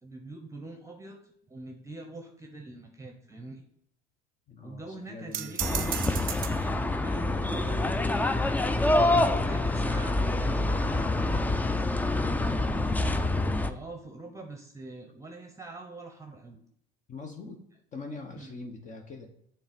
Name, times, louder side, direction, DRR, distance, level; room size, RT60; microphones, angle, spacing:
voice 1, 0.0-3.6 4.6-8.0 8.7-13.0 13.6-16.6 18.4-18.5, right 2 dB, 15° right, 4 dB, 0.8 m, -44 dB
voice 2, 4.5-5.6 17.1-17.6 17.9-19.3, left 3 dB, 40° left, 4 dB, 0.9 m, -42 dB
sound 1, 5.3-6.7, right 11 dB, 50° right, 0.5 m, -34 dB
sound 2, 5.6-13.7, left 2 dB, 10° left, 0.4 m, -26 dB
6.3 x 3.4 x 5.1 m, 0.72 s
supercardioid pair, 95°, 19 cm